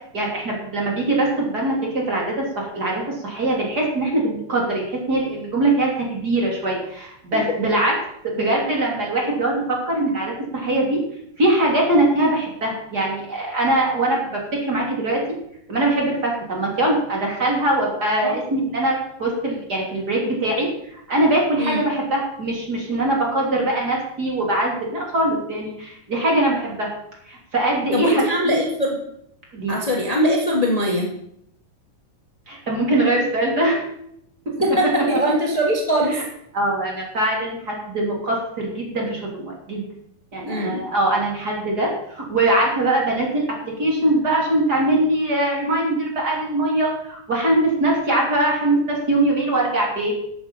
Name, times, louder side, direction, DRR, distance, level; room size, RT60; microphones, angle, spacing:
voice 1, 0.1-7.9 8.2-11.0 11.4-15.2 15.7-26.9 27.3-28.6 29.5-29.8 32.5-33.8 36.1-36.2 36.5-39.8 40.3-50.1, right 1 dB, 30° right, -2 dB, 3.4 m, -22 dB
voice 2, 27.9-29.0 29.7-31.1 34.6-36.2 40.5-40.8, equal, 25° left, -1 dB, 0.7 m, -21 dB
13.0 x 8.4 x 5.6 m, 0.74 s
omnidirectional pair, 4.0 m